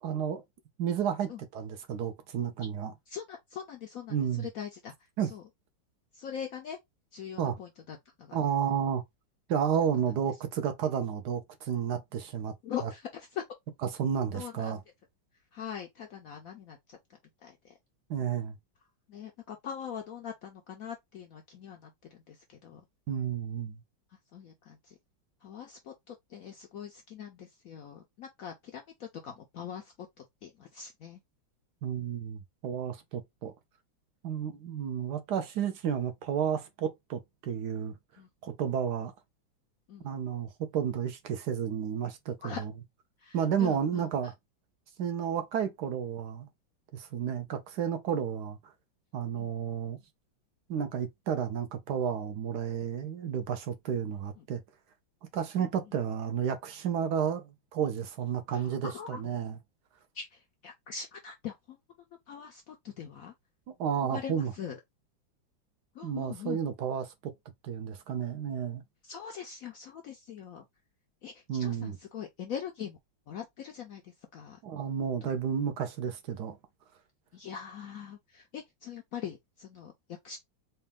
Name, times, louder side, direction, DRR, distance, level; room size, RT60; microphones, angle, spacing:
voice 1, 0.0-0.4 0.8-2.9 4.1-4.5 5.2-5.3 7.4-7.6 8.3-9.0 9.5-12.5 12.8-12.9 13.9-14.8 18.1-18.6 23.1-23.8 31.8-33.5 34.2-37.9 38.4-39.1 40.0-42.7 43.3-44.3 45.0-46.5 46.9-48.6 49.1-50.0 50.7-54.6 55.3-59.6 63.8-64.5 66.0-67.3 67.6-68.8 71.5-72.0 74.6-76.6, right 8 dB, 70° right, 1.2 m, -31 dB
voice 2, 3.1-4.9 5.3-5.4 6.1-6.8 7.1-8.4 12.6-13.4 14.3-14.7 15.5-17.0 17.4-17.8 19.1-22.8 24.3-24.9 25.4-31.2 34.4-34.6 38.2-38.3 39.9-40.1 42.4-42.6 43.2-44.0 47.2-47.4 49.4-49.5 54.4-54.5 55.6-55.7 58.5-59.2 60.1-61.8 62.3-63.3 64.1-64.8 65.9-66.6 69.0-70.6 71.2-73.0 73.3-74.6 75.2-75.3 77.3-80.4, left 8 dB, 70° left, 0.8 m, -42 dB
4.2 x 2.3 x 3.4 m
omnidirectional pair, 2.1 m